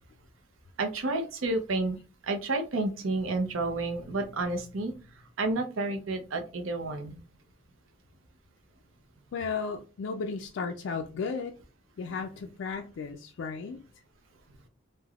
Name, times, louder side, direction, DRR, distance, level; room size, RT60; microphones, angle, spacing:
voice 1, 0.8-2.0 2.2-4.9 5.4-7.2, right 2 dB, 85° right, 0.6 m, -30 dB
voice 2, 9.3-11.5 12.0-13.8, left 5 dB, 65° left, 0.3 m, -34 dB
3.3 x 2.1 x 2.3 m
head